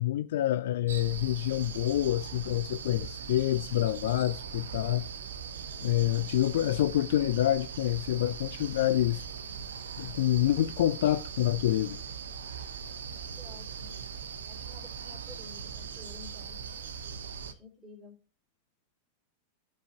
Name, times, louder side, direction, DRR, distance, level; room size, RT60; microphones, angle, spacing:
voice 1, 0.0-5.1 5.8-9.2 10.0-12.0, left 13 dB, 55° left, 0.4 m, -27 dB
sound 1, 0.9-17.5, right 7 dB, 65° right, 0.7 m, -40 dB
voice 2, 13.0-13.9 14.5-16.6 17.4-18.1, left 3 dB, 10° right, 3.3 m, -52 dB
14.0 x 4.9 x 2.5 m
figure-of-eight pair, 90°, 0 cm